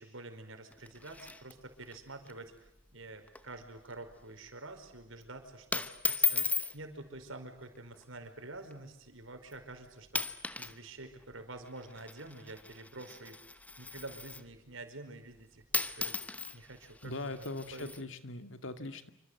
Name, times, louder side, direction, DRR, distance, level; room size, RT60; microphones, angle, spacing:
voice 1, 0.0-13.4 13.8-16.2 16.5-17.4 17.7-17.9, right 2 dB, 85° right, 6 dB, 5.1 m, -48 dB
sound 1, 0.7-2.0 2.3-2.4 2.7-2.9 3.3-3.6 3.9-4.2 5.0-5.2 5.7-6.8 7.7-8.0 8.7-8.8 9.5-9.7 10.1-10.8 11.0-14.6 15.4-15.5 15.7-18.0, left 4 dB, 10° left, 1.0 m, -36 dB
voice 2, 17.0-19.1, left 2 dB, 75° left, 9 dB, 2.2 m, -40 dB
28.0 x 25.5 x 8.2 m, 0.78 s
head